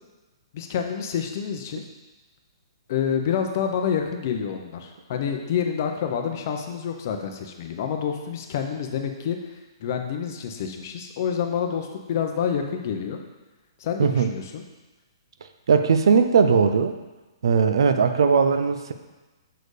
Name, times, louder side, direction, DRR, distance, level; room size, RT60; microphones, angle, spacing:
voice 1, 0.5-1.8 2.9-9.4 9.8-13.2 13.8-14.6, left 7 dB, 35° left, 4 dB, 0.7 m, -28 dB
voice 2, 14.0-14.3 15.7-16.9 17.4-18.9, right 5 dB, 65° right, 8 dB, 0.5 m, -19 dB
6.6 x 4.4 x 4.9 m, 1.1 s
hypercardioid pair, 170°, 3 cm